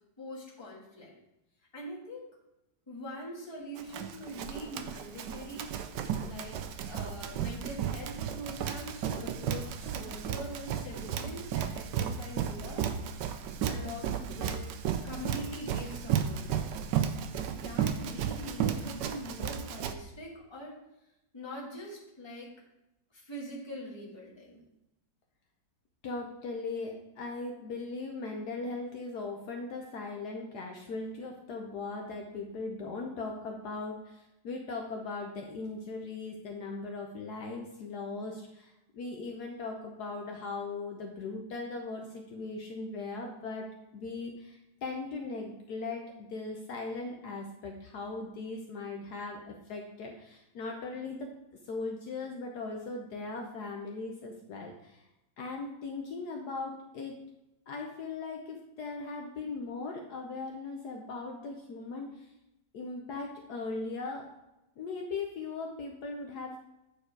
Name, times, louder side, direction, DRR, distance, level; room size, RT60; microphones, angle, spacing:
voice 1, 0.2-1.1 1.7-2.2 2.9-12.9 13.6-14.7 15.0-17.1 17.5-20.8 21.3-22.5 23.1-24.6, equal, 15° left, -4 dB, 1.6 m, -43 dB
Run, 3.8-19.9, right 8 dB, 75° right, 1.2 m, -34 dB
voice 2, 26.0-43.7 43.9-51.3 51.7-55.1 55.4-57.2 57.7-62.3 62.7-64.3 64.8-66.6, left 3 dB, 65° left, 1 dB, 1.3 m, -39 dB
8.7 x 4.6 x 4.6 m, 0.91 s
omnidirectional pair, 1.9 m